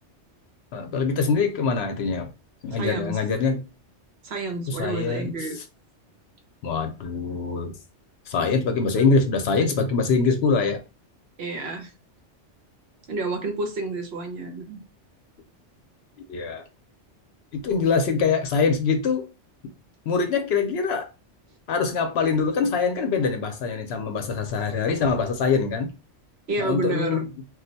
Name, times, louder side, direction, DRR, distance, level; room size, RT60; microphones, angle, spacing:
voice 1, 0.7-2.3 2.6-3.6 4.7-5.3 6.6-7.7 8.3-10.8 16.3-16.6 17.5-19.3 20.1-21.1 21.7-25.9 26.6-27.3, left 4 dB, 65° left, 0.7 m, -24 dB
voice 2, 2.7-3.2 4.2-5.6 11.4-11.9 13.1-14.8 26.5-27.2, right 3 dB, 65° right, 0.9 m, -30 dB
2.3 x 2.1 x 3.9 m
omnidirectional pair, 1.2 m